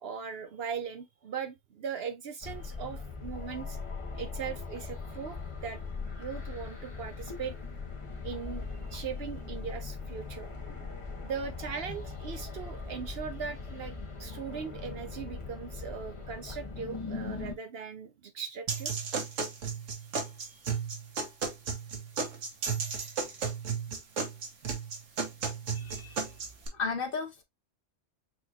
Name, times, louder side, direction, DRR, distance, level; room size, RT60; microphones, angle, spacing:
voice 1, 0.0-3.8 4.2-5.4 5.6-5.8 6.2-7.6 8.2-10.9 11.2-13.9 14.2-18.9 20.4-20.6, right 6 dB, 65° right, 0.7 m, -39 dB
sound 1, 2.4-17.5, left 4 dB, 25° left, 1.1 m, -40 dB
sound 2, 18.7-26.7, right 5 dB, 90° right, 1.5 m, -34 dB
voice 2, 25.7-26.2 26.7-27.4, left 5 dB, 50° left, 1.0 m, -34 dB
6.3 x 3.0 x 2.3 m
omnidirectional pair, 1.3 m